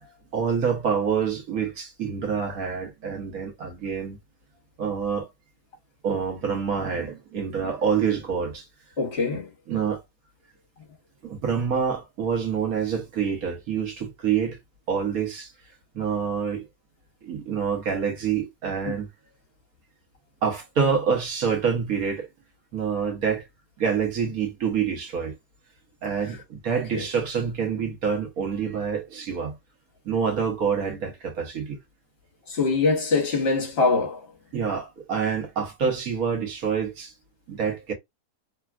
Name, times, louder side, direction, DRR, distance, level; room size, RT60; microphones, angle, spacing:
voice 1, 0.0-4.2 4.8-5.3 6.0-8.7 9.7-10.0 11.2-14.6 14.9-15.5 15.9-16.6 17.2-19.1 20.4-22.3 22.7-23.5 23.8-25.3 26.0-29.6 30.0-31.8 34.5-37.1 37.5-37.9, right 6 dB, 65° right, 1.4 m, -27 dB
voice 2, 9.0-9.5 18.9-19.0 26.7-27.1 32.5-34.3, left 3 dB, 45° left, 1.3 m, -24 dB
3.4 x 2.3 x 2.3 m
omnidirectional pair, 1.7 m